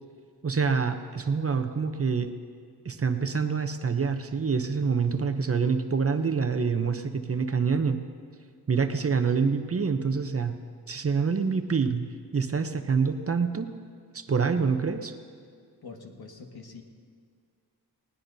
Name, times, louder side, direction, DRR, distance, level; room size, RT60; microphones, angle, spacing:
voice 1, 0.4-2.3 2.8-8.0 8.7-10.6 10.9-12.1 12.3-13.7 14.1-15.1, right 5 dB, 35° right, 8 dB, 0.6 m, -26 dB
voice 2, 15.8-16.8, left 4 dB, 65° left, 3 dB, 1.5 m, -45 dB
20.0 x 18.5 x 2.7 m, 2.1 s
wide cardioid pair, 145°, 40 cm